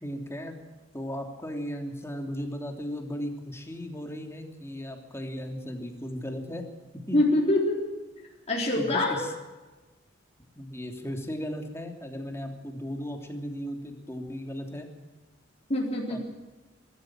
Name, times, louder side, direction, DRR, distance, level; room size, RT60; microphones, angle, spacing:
voice 1, 0.0-0.6 0.9-6.6 7.1-7.2 8.8-9.3 10.6-14.9 16.1-16.2, equal, 15° left, 3 dB, 3.1 m, -36 dB
voice 2, 7.1-7.8 8.5-9.2 15.7-16.2, left 1 dB, 35° left, -2 dB, 3.9 m, -24 dB
22.5 x 13.5 x 9.0 m, 1.2 s
head